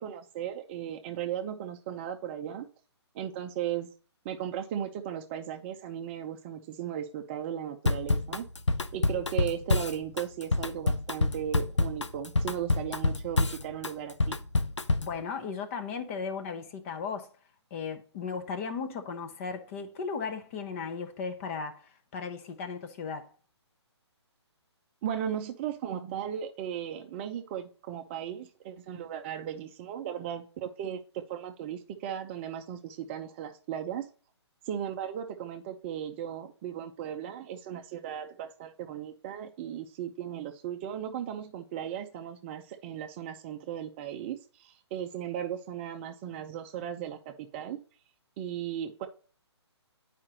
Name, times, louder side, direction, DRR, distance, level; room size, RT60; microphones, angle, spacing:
voice 1, 0.0-2.7 3.1-3.9 4.2-8.4 8.9-14.4 25.0-34.1 34.7-47.8 48.4-49.1, right 9 dB, 25° right, 0.6 m, -36 dB
Drum kit / Drum, 7.8-15.2, left 2 dB, 90° left, 0.6 m, -27 dB
voice 2, 15.0-17.3 17.7-23.3, left 5 dB, 30° left, 0.9 m, -36 dB
8.6 x 5.0 x 2.8 m
figure-of-eight pair, 135°, 15 cm